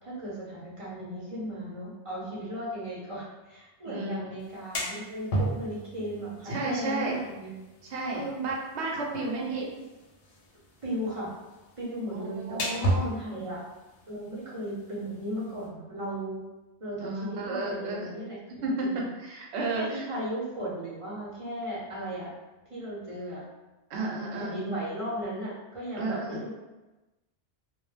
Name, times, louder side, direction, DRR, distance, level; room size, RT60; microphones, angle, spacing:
voice 1, 0.0-7.6 8.1-8.4 9.1-9.8 10.8-11.3 11.8-13.6 14.1-16.4 16.8-18.4 18.8-19.1 19.7-22.3 22.7-23.4 24.3-26.5, right 1 dB, 35° right, -7 dB, 0.7 m, -36 dB
voice 2, 3.9-4.2 6.5-7.3 7.8-9.6 12.1-13.1 17.0-18.1 18.6-20.0 23.9-24.6 26.0-26.4, right 2 dB, 75° right, -1 dB, 0.8 m, -32 dB
sound 1, 4.4-15.7, right 1 dB, 65° left, 0.7 m, -36 dB
2.1 x 2.0 x 3.2 m, 1.1 s
omnidirectional pair, 1.2 m